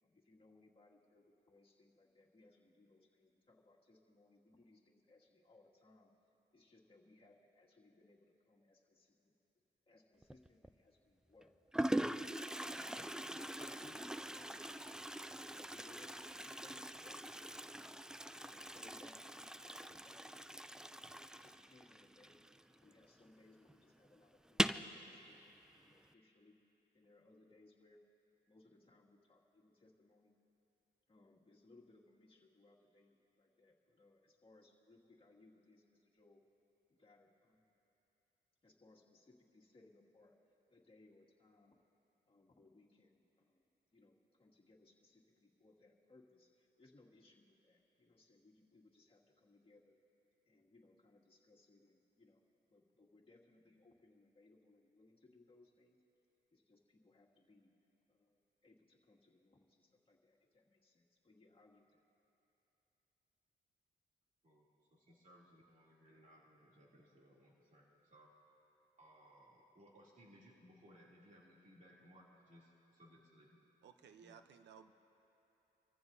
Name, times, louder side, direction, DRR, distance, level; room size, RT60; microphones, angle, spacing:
voice 1, 0.0-6.1 6.5-9.3 9.9-11.5 12.4-13.0 13.3-14.9 15.3-17.9 18.4-20.8 21.3-22.4 22.7-26.6 26.9-28.0 28.5-30.3 31.1-36.4 36.9-37.8 38.6-40.3 40.7-41.8 42.3-43.7 43.9-49.9 50.5-52.4 52.7-56.0 56.5-57.7 58.1-62.0, left 2 dB, 30° left, -3 dB, 2.2 m, -66 dB
Toilet flush, 10.2-10.7 11.4-11.5 11.7-23.0 23.3-23.4 23.7-23.8 24.4-24.9, right 1 dB, 5° right, 0.3 m, -42 dB
voice 2, 64.4-68.3 69.0-73.6 74.0-74.4, equal, 45° right, -4 dB, 2.9 m, -64 dB
voice 3, 73.8-74.9, right 7 dB, 80° right, 9 dB, 0.8 m, -59 dB
26.0 x 14.5 x 2.7 m, 3.0 s
cardioid pair, 75°, 18 cm